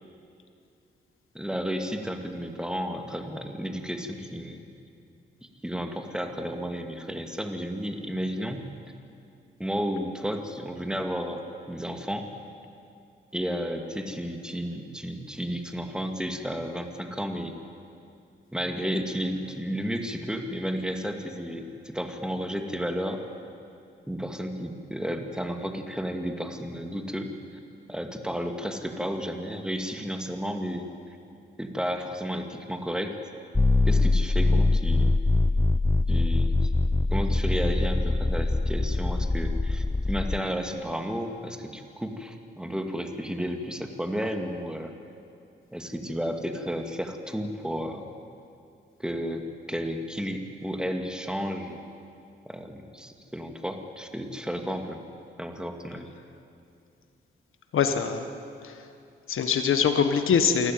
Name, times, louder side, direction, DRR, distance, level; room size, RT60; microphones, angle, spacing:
voice 1, 1.3-4.6 5.6-8.6 9.6-12.3 13.3-17.5 18.5-23.2 24.1-27.3 27.9-30.9 31.6-33.2 33.9-35.2 36.1-36.7 37.1-44.9 45.7-48.1 49.0-51.8 52.5-55.0 55.4-56.1, equal, 5° right, 5 dB, 2.4 m, -32 dB
sound 1, 33.5-40.4, left 2 dB, 10° left, 0.4 m, -23 dB
voice 2, 57.7-58.3 58.6-58.9 59.3-60.7, left 6 dB, 80° left, 7 dB, 1.5 m, -23 dB
28.0 x 13.0 x 9.5 m, 2.5 s
cardioid pair, 70°, 21 cm